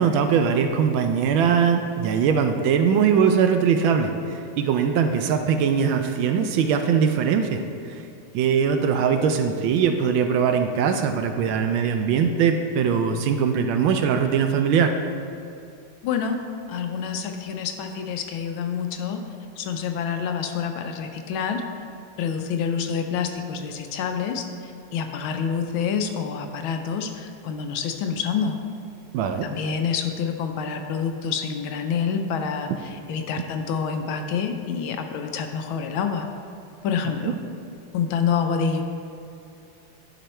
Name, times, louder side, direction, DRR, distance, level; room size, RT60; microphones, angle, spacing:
voice 1, 0.0-4.1 4.6-7.6 8.3-14.9 29.1-29.5 37.2-37.3, right 7 dB, 75° right, 7 dB, 1.3 m, -21 dB
voice 2, 16.0-16.4 16.7-19.3 19.6-21.6 22.2-28.6 29.4-36.2 36.8-37.3 37.9-38.8, left 6 dB, 75° left, 5 dB, 1.4 m, -27 dB
11.0 x 5.2 x 4.3 m, 2.6 s
omnidirectional pair, 2.4 m